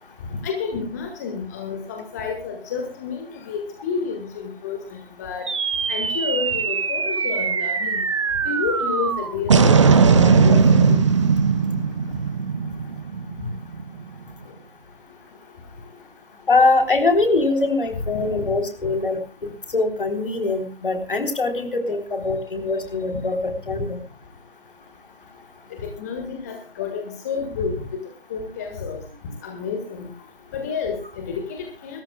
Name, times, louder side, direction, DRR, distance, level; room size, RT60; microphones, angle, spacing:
voice 1, 0.4-4.8 5.2-5.4 5.9-8.0 8.4-11.0 25.8-27.8 28.3-29.0 29.4-30.1 30.5-32.0, left 5 dB, 15° left, 3 dB, 1.7 m, -30 dB
sound 1, 5.5-14.0, right 5 dB, 30° right, 1.1 m, -19 dB
voice 2, 16.5-24.0, left 3 dB, 55° left, 5 dB, 3.7 m, -22 dB
27.5 x 14.0 x 2.3 m, 0.32 s
figure-of-eight pair, 155°, 31 cm